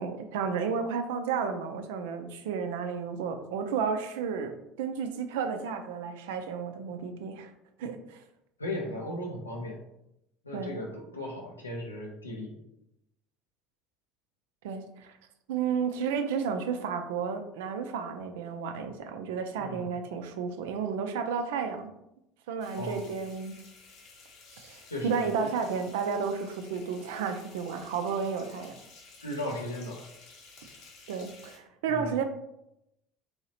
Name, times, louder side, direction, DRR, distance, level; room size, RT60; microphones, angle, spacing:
voice 1, 0.0-7.5 7.8-8.2 10.5-10.8 14.6-15.2 15.5-21.9 22.5-23.6 24.6-28.7 31.1-32.2, right 6 dB, 70° right, 7 dB, 0.3 m, -32 dB
voice 2, 8.6-9.8 10.4-12.6 19.5-19.9 22.7-23.0 24.9-25.5 29.2-30.0 31.9-32.2, left 1 dB, 90° left, -1 dB, 0.6 m, -36 dB
sound 1, 22.6-31.6, left 4 dB, 60° left, 0.8 m, -53 dB
3.0 x 2.8 x 2.8 m, 0.84 s
figure-of-eight pair, 65°, 0 cm